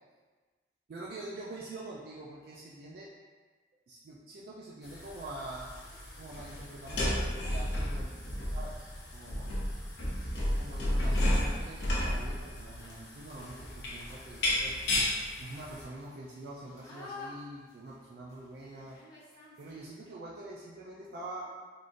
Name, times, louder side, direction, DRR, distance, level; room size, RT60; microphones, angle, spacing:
voice 1, 0.9-3.1 3.9-5.7 6.1-8.1 8.5-9.5 10.6-14.8 15.4-19.0 19.6-21.5, right 2 dB, 60° right, -5 dB, 0.3 m, -45 dB
sound 1, 4.8-15.8, left 1 dB, 80° left, 0.7 m, -33 dB
sound 2, 8.4-8.7 10.5-10.6 10.9-11.0 11.2-20.1, left 2 dB, 20° left, 0.8 m, -52 dB
3.6 x 2.4 x 2.5 m, 1.4 s
head